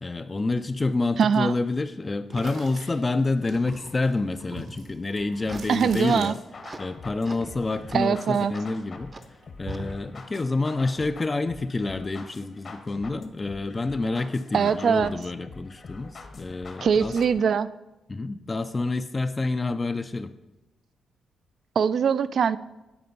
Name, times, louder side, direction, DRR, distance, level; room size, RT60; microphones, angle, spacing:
voice 1, 0.0-6.4 6.8-9.1 9.6-17.1 18.1-20.3, left 3 dB, 25° left, 9 dB, 0.3 m, -28 dB
voice 2, 1.2-1.6 5.7-6.3 7.9-8.5 14.5-15.1 16.8-17.7 21.8-22.6, right 7 dB, 65° right, 16 dB, 0.3 m, -22 dB
sound 1, 2.3-6.8 7.1-8.7 9.0-10.0, right 1 dB, 80° right, 1.6 m, -42 dB
sound 2, 5.1-7.0 7.2-7.5 7.9-8.0 8.5-8.6 9.1-9.2 9.7-9.8 10.3-10.4 11.0-11.1, right 2 dB, 25° right, 0.6 m, -44 dB
sound 3, 5.5-17.5, left 3 dB, 50° left, 0.9 m, -45 dB
9.6 x 4.2 x 5.3 m, 1.0 s
cardioid pair, 90°, 0 cm